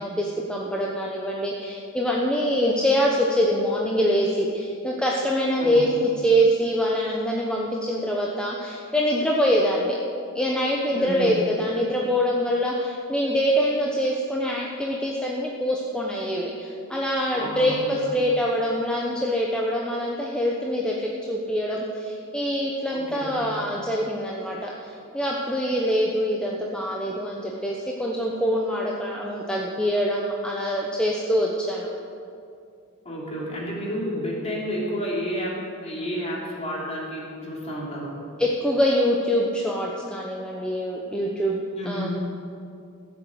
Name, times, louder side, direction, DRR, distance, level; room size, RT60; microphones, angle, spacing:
voice 1, 0.0-10.0 10.3-21.0 21.3-31.9 38.4-42.1, equal, 5° left, -3 dB, 1.0 m, -24 dB
voice 2, 10.9-11.3 17.3-18.1 22.9-23.6 33.0-38.2 41.8-42.1, equal, 30° left, -4 dB, 3.1 m, -31 dB
14.0 x 8.1 x 7.8 m, 2.5 s
head